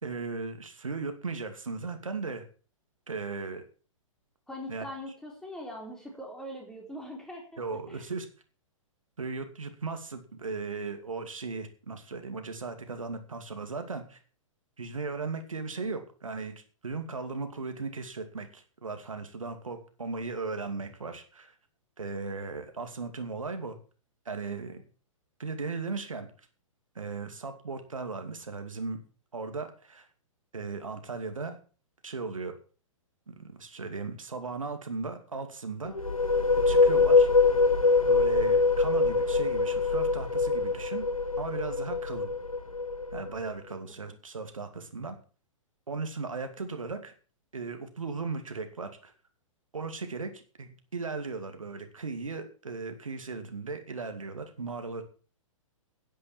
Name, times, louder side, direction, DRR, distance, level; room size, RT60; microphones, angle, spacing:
voice 1, 0.0-2.5 3.1-3.6 4.7-4.8 7.6-8.3 9.2-14.2 14.8-16.5 16.8-21.5 22.0-23.8 24.3-24.8 25.4-26.3 26.9-29.0 29.3-30.1 30.5-31.6 32.0-32.5 33.3-35.9 36.7-37.3 38.0-41.1 41.4-42.3 43.1-45.2 45.9-47.1 47.5-49.1 49.7-55.0, right 4 dB, 70° right, 7 dB, 2.5 m, -37 dB
voice 2, 4.5-7.6 7.9-8.1 24.4-24.8 43.9-44.1, equal, 5° left, 0 dB, 4.5 m, -42 dB
sound 1, 35.8-43.5, left 4 dB, 85° left, 1.3 m, -24 dB
11.0 x 10.0 x 7.3 m, 0.39 s
figure-of-eight pair, 115°, 17 cm